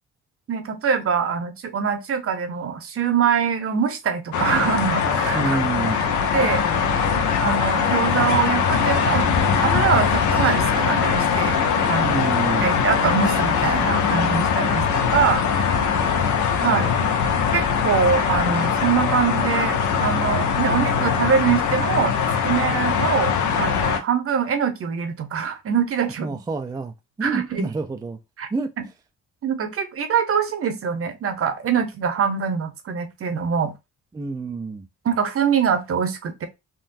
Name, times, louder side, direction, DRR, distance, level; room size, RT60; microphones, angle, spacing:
voice 1, 0.5-5.6 6.0-6.1 6.3-6.7 7.4-9.3 9.6-11.6 11.9-12.1 12.6-15.4 16.6-16.9 17.5-22.2 22.4-26.3 27.2-27.7 28.4-28.5 29.4-33.7 35.0-36.5, right 7 dB, 50° right, 0.8 m, -23 dB
sound 1, 4.3-24.0, left 6 dB, 75° left, 0.7 m, -21 dB
voice 2, 5.3-6.0 12.0-12.8 16.6-16.9 26.2-28.2 28.5-28.7 34.1-34.9, right 4 dB, 15° right, 0.3 m, -28 dB
3.7 x 2.2 x 2.6 m
cardioid pair, 90°, 30 cm